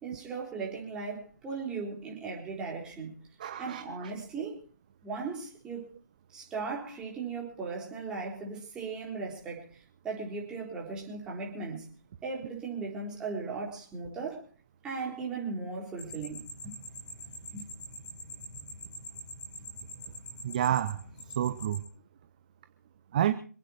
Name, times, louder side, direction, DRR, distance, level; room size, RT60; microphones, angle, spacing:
voice 1, 0.0-3.1 3.6-4.6 5.0-5.9 6.3-11.9 12.2-14.5 14.8-16.7 17.5-17.7, right 4 dB, 10° right, 3.9 m, -37 dB
voice 2, 3.4-4.1 20.4-21.0 21.4-21.8 23.1-23.3, right 11 dB, 25° right, 0.8 m, -29 dB
sound 1, 16.0-21.8, left 1 dB, 10° left, 6.1 m, -44 dB
26.5 x 9.1 x 4.4 m
figure-of-eight pair, 150°, 10 cm